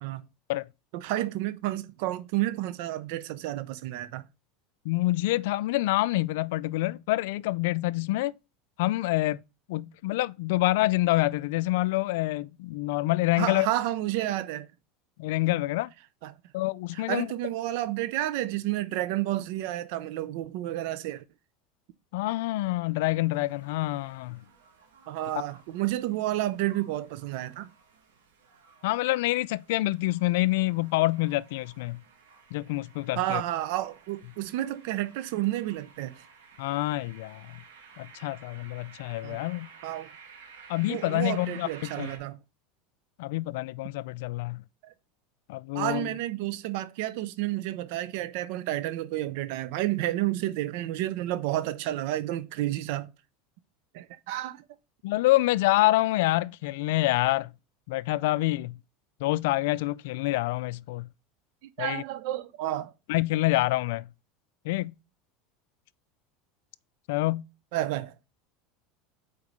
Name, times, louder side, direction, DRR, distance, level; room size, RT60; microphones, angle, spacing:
voice 1, 0.9-4.3 13.4-14.7 16.2-16.3 16.9-21.2 25.1-27.7 33.1-36.2 39.2-39.4 39.8-40.1 40.9-42.4 44.8-44.9 45.7-53.1 53.9-54.6 61.6-62.9 67.7-68.1, right 15 dB, 70° right, 0.6 m, -31 dB
voice 2, 4.8-8.3 8.8-9.4 9.7-13.7 15.2-15.9 16.5-17.3 22.1-24.4 28.8-32.0 32.5-33.4 36.6-37.5 38.0-39.7 40.7-41.7 42.0-42.1 43.2-44.6 45.5-46.1 55.0-57.5 57.9-58.8 59.2-61.1 61.8-62.0 63.1-64.1 64.6-64.9 67.1-67.4, left 18 dB, 75° left, 0.3 m, -27 dB
sound 1, 23.3-42.2, right 5 dB, 90° right, 2.1 m, -53 dB
4.9 x 4.5 x 5.4 m
supercardioid pair, 115°, 0 cm